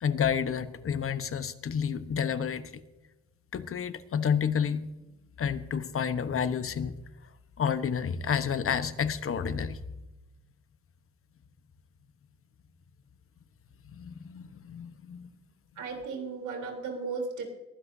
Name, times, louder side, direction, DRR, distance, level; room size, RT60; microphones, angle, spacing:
voice 1, 0.0-2.8 3.5-4.8 5.4-7.0 7.6-9.8 13.9-15.3, left 7 dB, 45° left, 11 dB, 1.1 m, -30 dB
voice 2, 15.8-17.5, right 4 dB, 75° right, 1 dB, 3.7 m, -35 dB
22.0 x 15.5 x 2.8 m, 1.0 s
cardioid pair, 90°, 30 cm